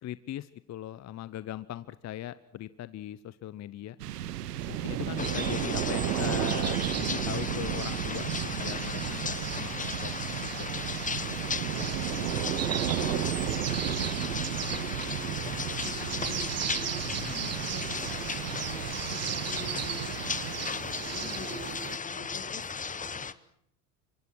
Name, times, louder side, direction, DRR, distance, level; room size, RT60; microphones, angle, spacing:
voice 1, 0.0-4.0 4.7-10.1 10.4-11.1 17.0-17.6, left 12 dB, 35° left, 16 dB, 0.9 m, -40 dB
sound 1, 4.0-20.9, right 11 dB, 80° right, 1.7 m, -34 dB
sound 2, 4.6-22.0, right 11 dB, 30° right, 1.0 m, -38 dB
sound 3, 5.2-23.3, left 5 dB, 15° left, 1.1 m, -36 dB
voice 2, 11.7-16.9 17.6-23.2, left 3 dB, 80° left, 4 dB, 6.3 m, -47 dB
24.5 x 24.0 x 6.3 m, 0.70 s
hypercardioid pair, 80°, 47 cm